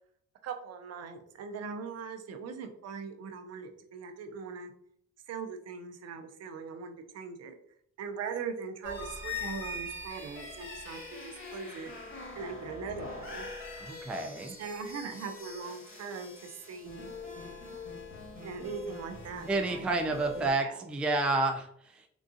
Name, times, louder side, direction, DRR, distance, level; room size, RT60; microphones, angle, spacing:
voice 1, 0.4-4.7 5.3-7.6 8.0-11.9 12.4-13.5 14.6-17.1 18.4-19.9 20.4-20.9, right 5 dB, 55° right, 6 dB, 0.5 m, -40 dB
sound 1, 8.8-20.5, left 3 dB, 40° left, 1.3 m, -43 dB
voice 2, 13.8-14.6 19.5-22.1, right 2 dB, 5° right, 3 dB, 0.3 m, -30 dB
3.8 x 2.3 x 2.5 m, 0.68 s
cardioid pair, 90°, 30 cm